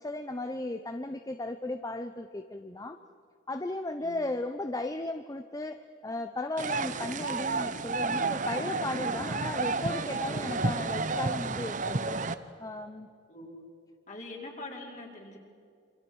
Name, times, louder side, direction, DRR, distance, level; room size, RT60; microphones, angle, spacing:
voice 1, 0.0-3.0 3.5-12.2 12.6-13.1, left 2 dB, 20° left, 8 dB, 0.7 m, -35 dB
sound 1, 6.6-12.3, right 3 dB, 40° right, 0.9 m, -31 dB
voice 2, 13.3-13.6 14.1-15.4, left 2 dB, 40° left, -1 dB, 4.7 m, -43 dB
27.5 x 26.0 x 6.3 m, 2.4 s
head